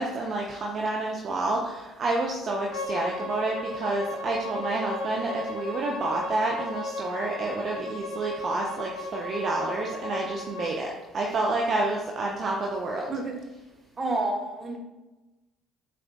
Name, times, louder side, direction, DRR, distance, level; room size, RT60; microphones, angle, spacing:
voice 1, 0.0-13.1, right 2 dB, 45° right, 0 dB, 0.5 m, -29 dB
Bowed string instrument, 2.7-10.7, left 2 dB, 65° left, 0.9 m, -35 dB
voice 2, 14.0-14.8, right 2 dB, 25° right, 1 dB, 0.9 m, -29 dB
7.4 x 2.5 x 2.2 m, 1.1 s
figure-of-eight pair, 50°, 0 cm